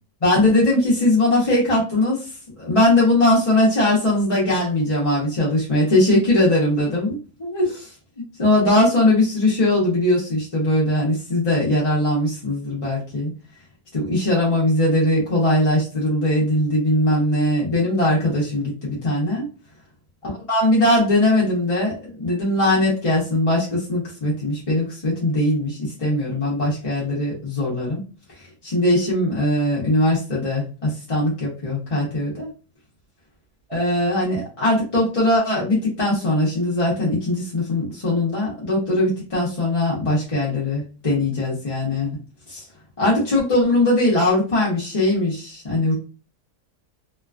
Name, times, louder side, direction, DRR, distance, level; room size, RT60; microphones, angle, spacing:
voice 1, 0.2-7.9 8.2-13.3 13.9-19.5 20.5-28.0 28.3-32.5 33.7-42.1 42.5-42.6 43.0-45.9, left 1 dB, 30° left, -6 dB, 0.6 m, -20 dB
3.0 x 2.3 x 2.4 m, 0.35 s
omnidirectional pair, 1.7 m